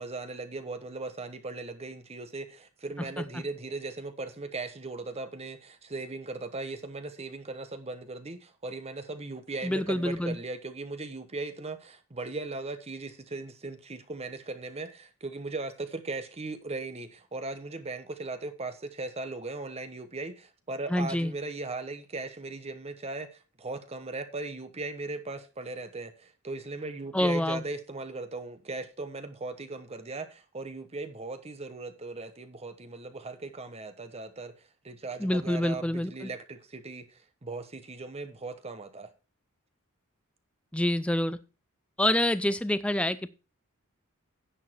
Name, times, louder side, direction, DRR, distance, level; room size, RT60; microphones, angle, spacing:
voice 1, 0.0-34.6 34.8-39.1, right 3 dB, 30° right, 1.0 m, -38 dB
voice 2, 9.6-10.4 20.9-21.3 27.1-27.6 35.2-36.3 40.7-41.4 42.0-43.3, left 1 dB, 5° left, 0.5 m, -27 dB
10.0 x 7.3 x 4.4 m
head